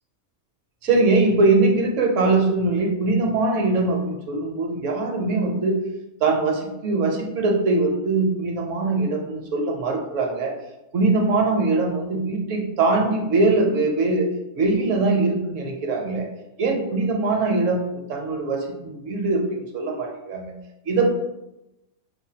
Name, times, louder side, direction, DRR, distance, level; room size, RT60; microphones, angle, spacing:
voice 1, 0.8-5.8 6.2-10.5 10.9-14.3 14.5-16.3 16.6-17.8 18.1-20.5 20.9-21.1, right 3 dB, 65° right, 1 dB, 1.0 m, -22 dB
6.5 x 2.3 x 2.7 m, 0.95 s
omnidirectional pair, 1.5 m